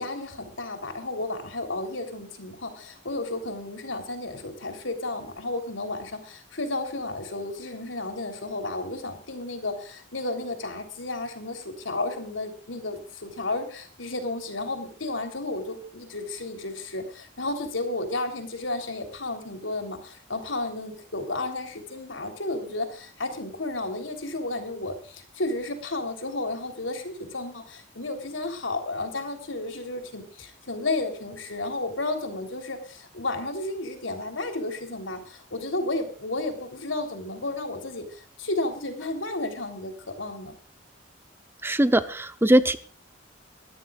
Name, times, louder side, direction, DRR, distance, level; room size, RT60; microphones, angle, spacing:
voice 1, 0.0-40.5, left 2 dB, 85° left, 6 dB, 3.6 m, -32 dB
voice 2, 41.6-42.8, right 1 dB, 10° right, 11 dB, 0.7 m, -20 dB
22.0 x 14.0 x 2.5 m, 0.41 s
head